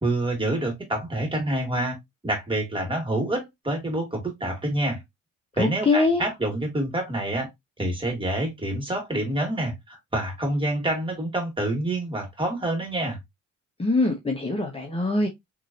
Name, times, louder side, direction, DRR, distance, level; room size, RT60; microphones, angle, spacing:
voice 1, 0.0-2.0 2.2-5.0 5.6-7.5 7.8-13.2, right 1 dB, 15° right, 2.3 m, -27 dB
voice 2, 5.6-6.2 13.8-15.3, left 2 dB, 20° left, 0.9 m, -23 dB
4.4 x 3.1 x 2.8 m
cardioid pair, 90°, 30 cm